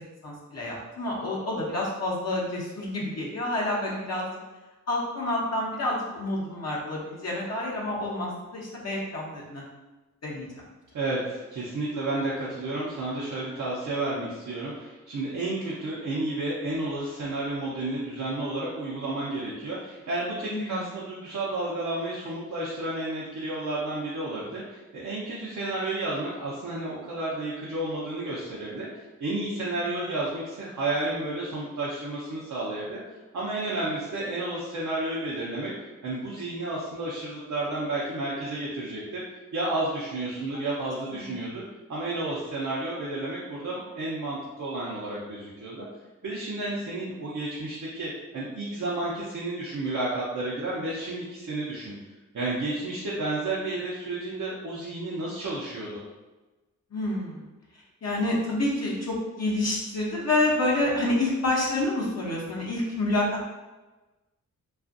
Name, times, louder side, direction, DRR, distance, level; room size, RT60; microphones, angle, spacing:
voice 1, 0.2-4.3 4.9-9.6 10.2-10.6 20.5-20.9 29.8-29.9 40.5-40.6 41.1-41.5 56.9-57.5 58.0-63.5, left 1 dB, 50° left, -4 dB, 0.8 m, -28 dB
voice 2, 10.9-33.0 33.3-35.7 36.0-39.2 39.5-41.6 41.9-45.9 46.2-51.9 52.3-56.0, right 2 dB, 60° right, -7 dB, 0.7 m, -31 dB
2.4 x 2.4 x 2.5 m, 1.2 s
cardioid pair, 40°, 34 cm